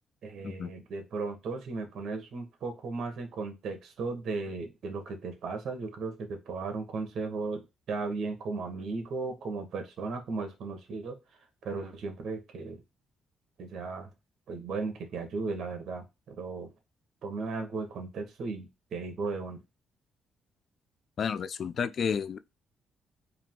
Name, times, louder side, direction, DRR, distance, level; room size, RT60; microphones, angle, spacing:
voice 1, 0.2-11.2 11.6-12.8 13.6-14.1 14.5-16.7 17.2-19.6, right 4 dB, 65° right, 1.3 m, -36 dB
voice 2, 21.2-22.4, left 7 dB, 55° left, 0.4 m, -31 dB
3.8 x 2.8 x 3.7 m
cardioid pair, 90°, 0 cm